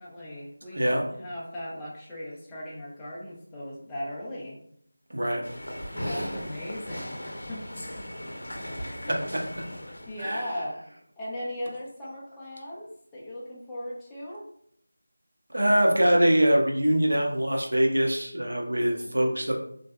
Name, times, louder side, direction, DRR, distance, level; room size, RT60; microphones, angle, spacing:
voice 1, 0.0-4.6 5.9-8.1 9.0-9.3 10.0-10.8 11.2-14.5 18.7-19.1, left 1 dB, 5° left, -8 dB, 0.3 m, -38 dB
voice 2, 5.1-5.4 6.0-6.3 9.1-9.4 10.2-10.5 15.5-19.6, right 1 dB, 85° right, 0 dB, 0.6 m, -24 dB
sound 1, 5.4-10.4, equal, 85° left, 0.5 m, -37 dB
2.6 x 2.1 x 2.2 m, 0.69 s
figure-of-eight pair, 175°, 0 cm